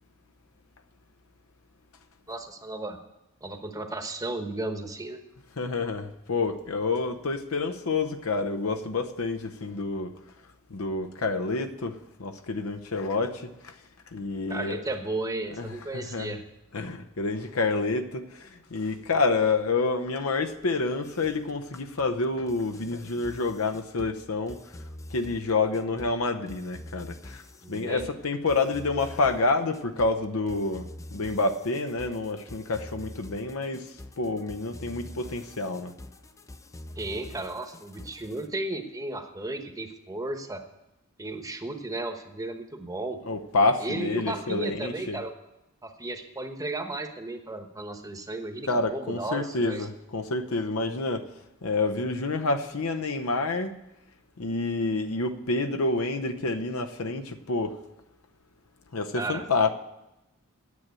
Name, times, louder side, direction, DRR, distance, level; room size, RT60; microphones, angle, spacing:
voice 1, 2.3-3.0 3.4-5.2 14.5-16.4 27.6-28.1 37.0-40.6 41.2-43.2 43.8-45.3 45.8-49.9 59.1-59.4, right 2 dB, 15° right, 1.0 m, -34 dB
voice 2, 5.6-10.1 10.7-13.7 14.1-14.8 15.5-16.4 16.7-24.6 25.1-27.4 27.7-33.9 34.2-35.9 43.3-45.2 48.7-51.3 51.6-53.8 54.4-57.8 58.9-59.7, left 3 dB, 85° left, 0.9 m, -28 dB
sound 1, 21.0-38.5, left 1 dB, 15° left, 0.4 m, -45 dB
9.4 x 7.6 x 9.1 m
head